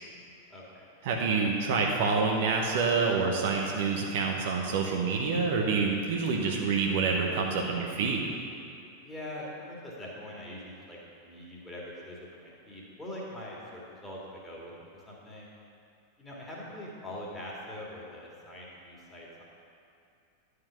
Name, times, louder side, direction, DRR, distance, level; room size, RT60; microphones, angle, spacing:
voice 1, 0.5-0.9 9.0-15.5 16.2-19.4, left 1 dB, 10° left, -5 dB, 2.2 m, -43 dB
voice 2, 1.0-8.3, right 4 dB, 55° right, 0 dB, 0.9 m, -27 dB
10.5 x 4.9 x 5.8 m, 2.6 s
figure-of-eight pair, 90°, 0 cm